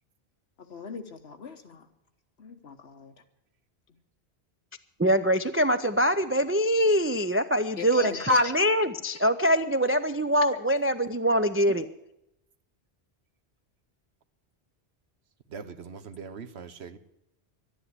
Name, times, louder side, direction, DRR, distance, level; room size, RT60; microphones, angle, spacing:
voice 1, 0.7-1.8 2.4-3.1 7.8-8.5, left 3 dB, 70° left, 7 dB, 1.4 m, -35 dB
voice 2, 5.0-11.9, equal, 20° right, 9 dB, 0.3 m, -24 dB
voice 3, 15.5-17.0, right 5 dB, 80° right, 11 dB, 1.2 m, -41 dB
12.0 x 10.5 x 9.6 m, 0.84 s
omnidirectional pair, 1.1 m